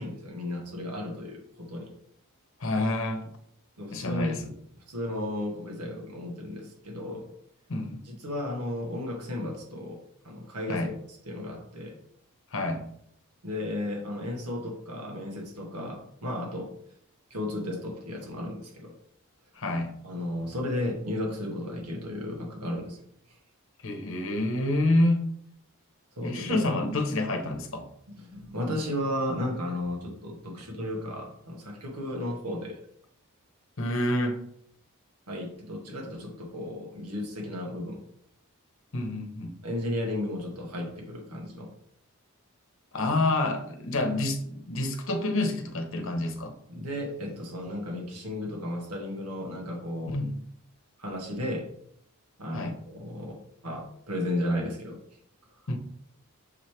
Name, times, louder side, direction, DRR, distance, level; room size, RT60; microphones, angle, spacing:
voice 1, 0.0-1.9 3.8-4.3 4.9-7.3 8.0-10.0 10.2-10.9 11.2-12.0 13.4-16.7 17.3-18.9 20.0-23.0 26.2-26.6 28.1-32.8 35.3-38.0 39.6-41.7 46.7-50.2 51.0-51.7 52.4-53.4 53.6-55.0, left 1 dB, 90° right, 1 dB, 1.5 m, -34 dB
voice 2, 2.6-3.3 3.9-4.5 7.7-8.0 10.7-10.9 12.5-12.8 19.6-19.9 23.8-25.2 26.2-27.9 33.8-34.4 38.9-39.5 42.9-46.5 50.1-50.4 52.5-52.7 55.7-55.8, left 2 dB, 60° left, 5 dB, 0.9 m, -28 dB
6.6 x 3.2 x 4.4 m, 0.67 s
head